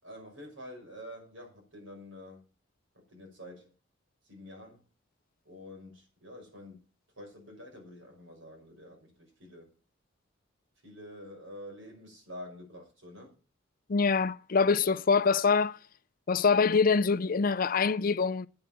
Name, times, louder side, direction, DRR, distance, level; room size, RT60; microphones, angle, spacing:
voice 1, 0.0-2.4 2.9-3.7 4.2-4.9 5.4-6.8 7.2-9.7 10.8-13.4, left 1 dB, 80° right, 5.9 m, -48 dB
voice 2, 13.9-15.8 16.3-18.5, left 5 dB, 45° left, 0.5 m, -25 dB
8.7 x 8.0 x 7.3 m
head